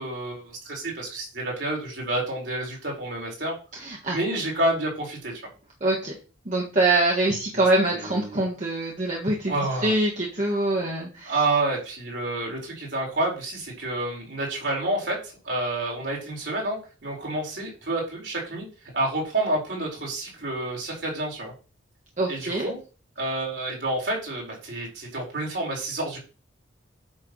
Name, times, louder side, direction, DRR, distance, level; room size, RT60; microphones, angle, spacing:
voice 1, 0.0-3.5 4.1-5.4 7.5-7.6 7.9-8.4 9.5-9.9 10.4-10.6 11.3-15.2 15.4-18.7 18.9-21.5 22.3-22.8 23.2-26.2, right 2 dB, 60° right, -2 dB, 4.4 m, -29 dB
voice 2, 3.8-4.2 5.8-6.1 6.4-9.5 9.8-11.4 22.2-22.7, right 2 dB, 35° right, -3 dB, 1.6 m, -24 dB
8.8 x 3.6 x 6.2 m, 0.35 s
head